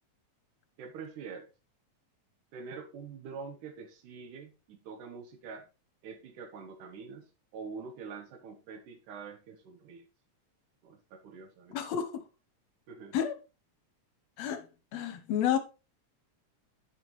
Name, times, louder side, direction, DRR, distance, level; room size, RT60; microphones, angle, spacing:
voice 1, 0.8-1.5 2.5-5.7 6.0-10.1 10.8-11.8 12.9-13.2, right 5 dB, 90° right, 2.6 m, -45 dB
voice 2, 11.7-12.2 13.1-13.4 14.4-14.7 14.9-15.6, left 9 dB, 70° left, 1.9 m, -30 dB
9.6 x 6.2 x 3.0 m
omnidirectional pair, 3.5 m